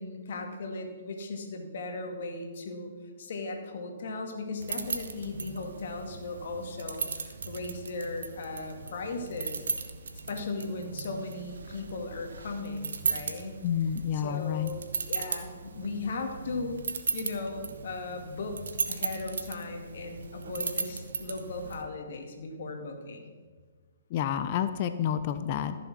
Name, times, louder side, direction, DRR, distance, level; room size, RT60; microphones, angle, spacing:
voice 1, 0.0-2.9 3.2-9.6 10.3-13.6 14.1-16.8 17.1-18.6 18.9-23.3, left 3 dB, 60° left, 4 dB, 2.2 m, -37 dB
sound 1, 4.6-21.8, right 5 dB, 70° right, 1.3 m, -37 dB
voice 2, 13.6-14.7 24.1-25.8, left 9 dB, 40° left, 10 dB, 0.7 m, -29 dB
14.0 x 7.1 x 6.2 m, 1.5 s
hypercardioid pair, 130°, 0 cm